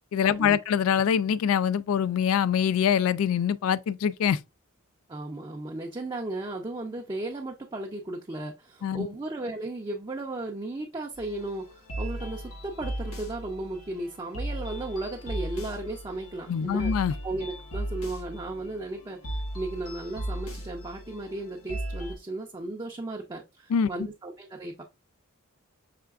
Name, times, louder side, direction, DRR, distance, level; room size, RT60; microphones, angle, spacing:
voice 1, 0.1-4.4 8.8-9.1 16.5-17.1 23.7-23.9, left 8 dB, 70° left, 0.3 m, -24 dB
voice 2, 5.1-16.9 17.2-24.8, right 2 dB, 20° right, 0.5 m, -35 dB
sound 1, 11.2-22.2, right 1 dB, 90° left, 1.4 m, -37 dB
5.7 x 3.3 x 2.4 m
head